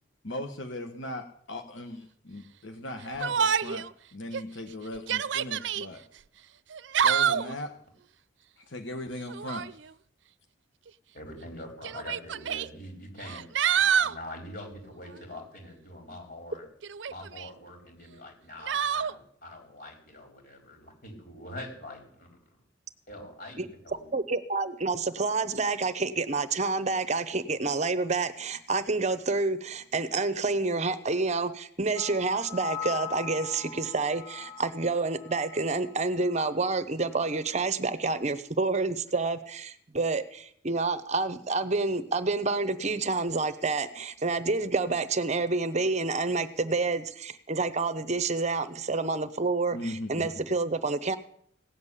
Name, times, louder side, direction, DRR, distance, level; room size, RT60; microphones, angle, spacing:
voice 1, 0.2-3.9 4.1-6.0 7.0-7.7 8.6-9.7 49.7-50.3, left 1 dB, 80° left, 7 dB, 1.2 m, -38 dB
Yell, 3.2-3.9 4.3-4.4 5.0-5.9 6.7-7.5 9.3-9.7 10.9-11.0 11.8-12.7 13.2-14.2 16.8-17.5 18.7-19.1, right 8 dB, 70° right, 0.5 m, -27 dB
voice 2, 11.1-13.5 13.7-16.6 17.1-22.3 23.1-24.1, left 1 dB, 50° left, 2 dB, 4.5 m, -44 dB
voice 3, 24.1-51.2, right 3 dB, 35° right, 12 dB, 0.8 m, -28 dB
sound 1, 32.0-36.0 36.3-36.6, left 7 dB, 25° left, 1.3 m, -41 dB
16.5 x 7.3 x 9.8 m, 0.67 s
head